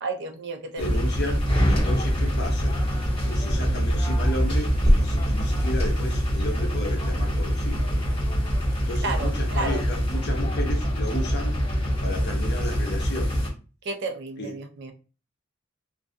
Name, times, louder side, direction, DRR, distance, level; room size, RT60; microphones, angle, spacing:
voice 1, 0.0-1.0 9.0-9.8 13.8-14.9, right 3 dB, 60° right, 6 dB, 0.4 m, -32 dB
voice 2, 0.8-2.8 3.2-7.9 8.9-11.6 12.0-13.5 14.4-14.5, left 1 dB, 55° left, 2 dB, 0.6 m, -33 dB
sound 1, 0.8-13.5, equal, 30° left, 1.0 m, -24 dB
sound 2, 3.5-8.9, right 1 dB, 30° right, 0.8 m, -32 dB
2.3 x 2.2 x 2.5 m, 0.34 s
head